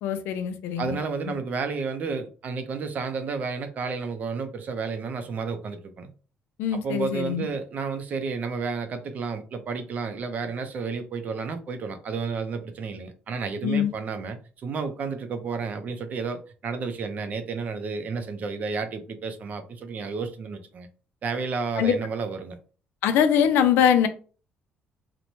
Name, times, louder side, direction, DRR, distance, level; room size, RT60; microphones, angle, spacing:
voice 1, 0.0-1.0 1.3-1.4 6.6-7.5 13.6-13.9 21.8-22.0 23.0-24.1, left 8 dB, 85° left, 0.4 m, -22 dB
voice 2, 0.8-6.1 6.7-20.9 21.2-22.6, right 5 dB, 45° right, 0.5 m, -31 dB
2.9 x 2.1 x 2.7 m
cardioid pair, 120°, 4 cm